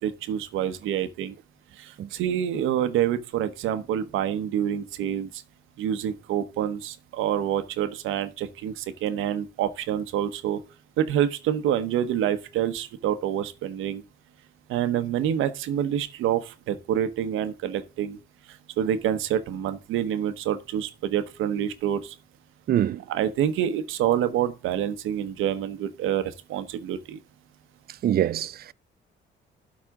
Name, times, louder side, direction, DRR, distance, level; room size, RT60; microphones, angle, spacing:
voice 1, 0.0-1.3 1.8-5.4 5.8-10.6 11.0-14.0 14.7-18.2 18.5-22.2 23.1-27.2, right 10 dB, 90° right, 1.0 m, -27 dB
voice 2, 22.7-23.0 28.0-28.7, right 11 dB, 50° right, 0.4 m, -24 dB
12.5 x 4.1 x 3.7 m
cardioid pair, 90°, 20 cm